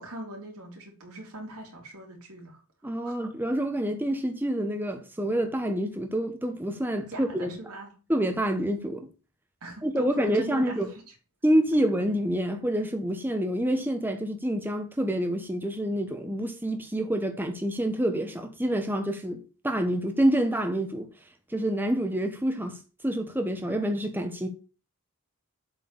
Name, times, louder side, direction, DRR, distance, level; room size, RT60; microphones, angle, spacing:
voice 1, 0.0-2.6 3.0-3.2 7.1-7.9 9.6-11.1, right 2 dB, 90° right, 3.2 m, -41 dB
voice 2, 2.8-7.5 8.1-9.1 9.8-10.9 11.4-21.1 21.5-24.5, right 1 dB, 10° right, 1.0 m, -27 dB
7.7 x 4.6 x 7.0 m
head